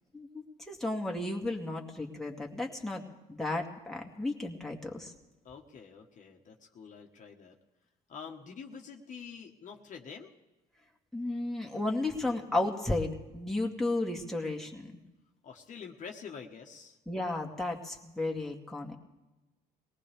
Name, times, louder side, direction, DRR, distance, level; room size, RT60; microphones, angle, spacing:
voice 1, 0.1-3.0 3.3-5.1 11.1-14.9 17.1-19.0, left 2 dB, ahead, -1 dB, 2.1 m, -33 dB
voice 2, 5.4-7.5 8.1-10.3 15.4-17.0, left 6 dB, 50° left, 1 dB, 1.5 m, -46 dB
22.5 x 18.5 x 3.5 m, 1.1 s
cardioid pair, 110°, 17 cm